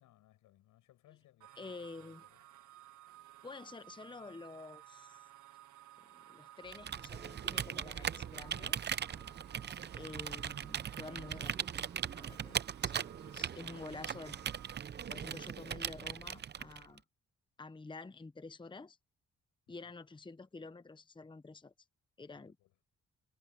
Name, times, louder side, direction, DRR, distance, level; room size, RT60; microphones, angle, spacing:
voice 1, 0.0-2.4 9.0-9.4 19.7-20.0 22.3-22.7, left 14 dB, 90° left, 5.7 m, -67 dB
sound 1, 1.4-14.8, right 13 dB, 80° right, 1.4 m, -57 dB
voice 2, 1.6-2.2 3.4-5.2 6.0-8.8 10.0-11.7 12.1-12.9 13.3-14.4 15.1-17.0 17.6-19.0 19.7-21.7 22.2-22.6, left 3 dB, 15° left, 1.0 m, -49 dB
Computer keyboard, 6.7-17.0, right 8 dB, 35° right, 0.6 m, -39 dB
cardioid pair, 90°, 30 cm